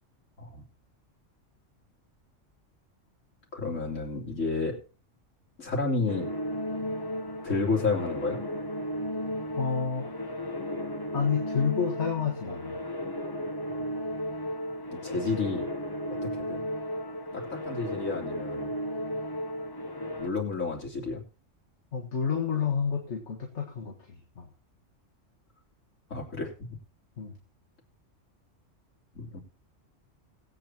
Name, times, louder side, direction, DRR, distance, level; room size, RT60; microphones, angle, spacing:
voice 1, 3.5-4.8 5.6-6.3 7.4-8.4 15.0-15.7 16.4-16.6 17.3-18.7 20.2-21.2 26.1-26.5 29.2-29.4, left 3 dB, 90° left, -2 dB, 3.6 m, -30 dB
sound 1, 6.1-20.3, equal, 20° left, 0.8 m, -34 dB
voice 2, 9.6-10.1 11.1-12.8 21.9-23.9 24.4-24.5 27.2-27.4, left 7 dB, 65° left, 1 dB, 1.9 m, -29 dB
20.5 x 8.5 x 2.9 m, 0.34 s
omnidirectional pair, 1.3 m